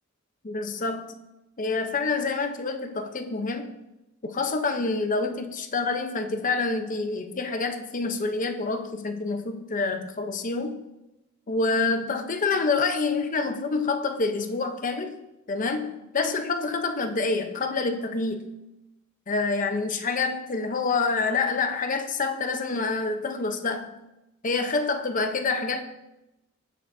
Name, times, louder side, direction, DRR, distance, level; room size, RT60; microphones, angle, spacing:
voice 1, 0.4-1.2 1.6-3.8 4.2-10.8 11.5-15.2 15.5-18.5 19.3-24.0 24.4-25.8, left 3 dB, 40° left, 6 dB, 0.7 m, -27 dB
16.5 x 6.0 x 2.7 m, 0.94 s
head